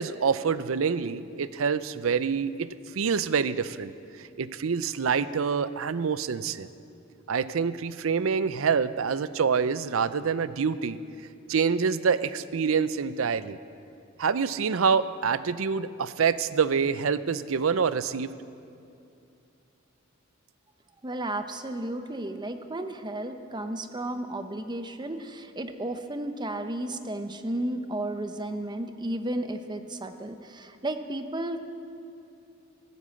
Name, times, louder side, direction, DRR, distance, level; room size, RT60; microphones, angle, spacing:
voice 1, 0.0-2.7 2.9-3.9 4.2-6.7 7.3-11.0 11.5-13.6 14.2-18.3, right 6 dB, 85° right, 15 dB, 0.5 m, -26 dB
voice 2, 21.0-31.6, right 1 dB, 20° right, 8 dB, 0.8 m, -33 dB
14.5 x 12.0 x 7.7 m, 2.7 s
head